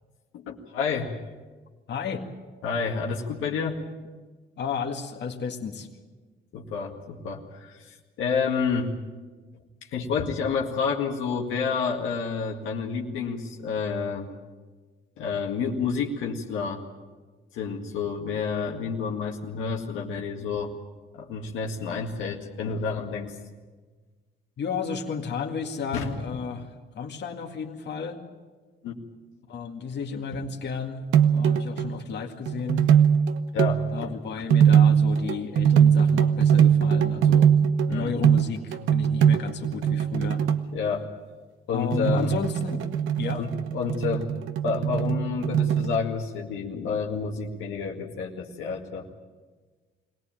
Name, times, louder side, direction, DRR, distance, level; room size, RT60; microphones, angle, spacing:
voice 1, 0.3-1.2 2.6-3.8 6.5-9.0 9.9-14.3 15.2-16.8 17.5-20.7 21.1-23.3 25.9-26.4 28.8-29.0 33.5-33.8 37.9-38.1 40.7-41.1 41.7-42.3 43.3-44.3 44.6-49.1, left 5 dB, 90° left, 0 dB, 2.1 m, -29 dB
voice 2, 1.9-2.3 4.6-5.9 24.6-28.2 29.5-31.0 31.3-32.9 33.9-37.6 37.9-40.4 41.7-42.8 43.1-43.4, left 6 dB, 60° left, 2 dB, 2.1 m, -33 dB
sound 1, 31.1-32.0 32.5-33.9 34.5-40.6 41.9-46.0, right 8 dB, 85° right, 1.1 m, -21 dB
22.5 x 17.5 x 9.0 m, 1.4 s
cardioid pair, 90°, 20 cm